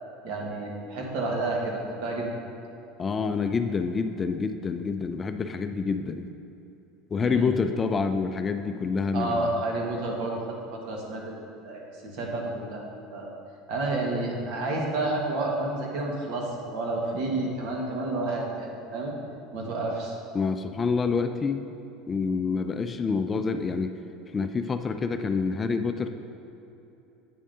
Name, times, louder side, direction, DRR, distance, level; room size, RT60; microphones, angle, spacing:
voice 1, 0.2-2.3 7.2-7.5 9.1-10.4 10.7-13.3 13.7-19.1 19.5-20.2, right 2 dB, 65° right, -1 dB, 1.4 m, -30 dB
voice 2, 3.0-6.3 7.1-9.6 20.3-21.6 22.1-23.9 24.3-26.1, left 5 dB, 25° left, 8 dB, 0.4 m, -27 dB
8.5 x 7.0 x 2.7 m, 2.9 s
supercardioid pair, 110°, 0 cm